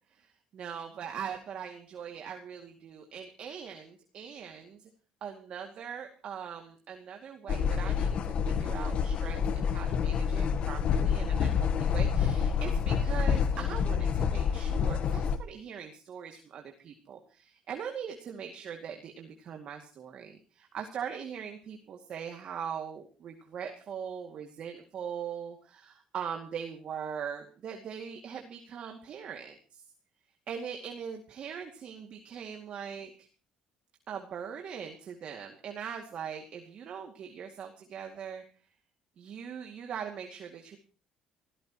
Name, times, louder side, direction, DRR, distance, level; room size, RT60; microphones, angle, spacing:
voice 1, 0.5-4.8 5.2-29.8 30.5-33.1 34.1-38.4 39.2-40.8, right 7 dB, 55° right, 3 dB, 2.3 m, -41 dB
sound 1, 7.5-15.4, left 7 dB, 55° left, 1.2 m, -28 dB
26.0 x 15.5 x 3.0 m, 0.38 s
cardioid pair, 120°, 2 cm